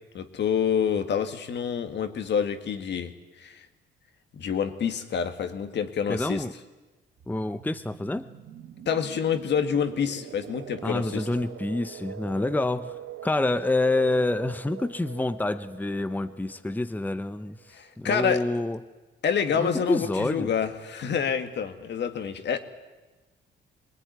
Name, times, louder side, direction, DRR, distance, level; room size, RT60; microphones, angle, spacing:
voice 1, 0.1-3.1 3.4-3.7 4.3-6.4 8.9-11.3 17.7-18.5 19.2-22.6, left 7 dB, 60° left, 8 dB, 2.0 m, -27 dB
voice 2, 6.1-6.5 7.3-8.3 10.8-18.8 19.5-20.5, left 2 dB, 10° left, 11 dB, 0.9 m, -27 dB
sound 1, 7.2-17.7, right 9 dB, 75° right, 1.5 m, -43 dB
23.0 x 20.0 x 9.5 m, 1.2 s
cardioid pair, 90°, 20 cm